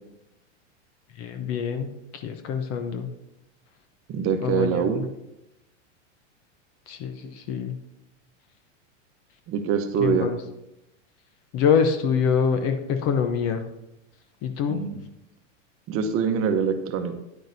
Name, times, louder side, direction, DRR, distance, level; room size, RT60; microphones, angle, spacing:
voice 1, 1.2-3.1 4.4-4.9 6.9-7.8 10.0-10.3 11.5-13.6 14.4-14.8, left 6 dB, 40° left, 8 dB, 0.8 m, -25 dB
voice 2, 4.1-5.1 9.5-10.3 14.7-15.0 15.9-17.2, right 6 dB, 35° right, 8 dB, 1.0 m, -24 dB
9.9 x 9.0 x 2.7 m, 0.89 s
hypercardioid pair, 120°, 37 cm